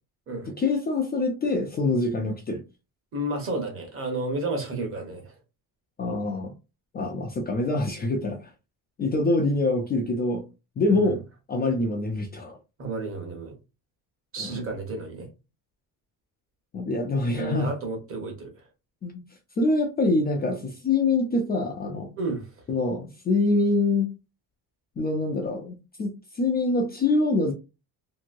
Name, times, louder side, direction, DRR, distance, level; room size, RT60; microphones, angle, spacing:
voice 1, 0.5-2.6 6.0-6.5 6.9-8.5 9.0-10.4 10.8-11.2 11.5-12.6 14.4-14.6 16.7-17.7 19.0-19.2 19.6-22.1 22.7-24.1 25.0-27.5, left 2 dB, 25° left, 0.4 m, -25 dB
voice 2, 3.1-5.3 10.9-11.0 12.8-13.5 14.3-15.3 17.3-18.5 22.2-22.5, right 2 dB, 35° right, 1.0 m, -31 dB
2.9 x 2.6 x 2.5 m
cardioid pair, 155°, 38 cm